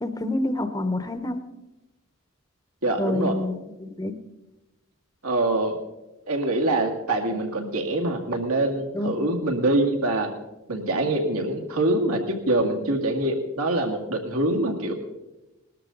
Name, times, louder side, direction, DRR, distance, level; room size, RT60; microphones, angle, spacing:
voice 1, 0.0-1.4 3.0-4.1 8.9-9.1, left 1 dB, 15° left, 9 dB, 0.9 m, -27 dB
voice 2, 2.8-3.4 5.2-5.7 6.3-10.3 10.7-14.9, right 2 dB, 80° right, 3 dB, 2.1 m, -24 dB
20.0 x 13.0 x 3.9 m, 1.0 s
head